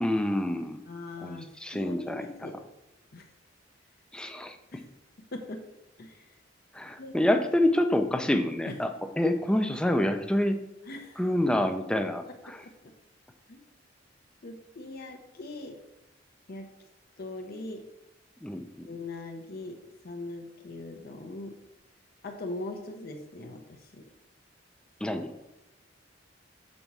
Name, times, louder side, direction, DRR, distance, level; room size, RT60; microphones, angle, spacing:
voice 1, 0.0-0.8 1.2-2.5 4.1-4.6 6.7-8.9 9.2-10.6 11.2-12.6 18.4-18.9 25.0-25.3, left 1 dB, 5° left, 7 dB, 0.4 m, -27 dB
voice 2, 0.9-2.6 3.1-3.3 4.7-4.8 5.3-5.6 6.0-6.3 7.0-7.3 8.7-8.8 9.2-9.3 10.9-11.2 12.6-12.7 13.5-13.6 14.4-15.8 16.5-16.7 17.2-17.8 18.9-19.8 20.0-21.5 22.2-24.0, left 2 dB, 55° left, 5 dB, 0.7 m, -40 dB
5.3 x 4.2 x 6.0 m, 0.97 s
head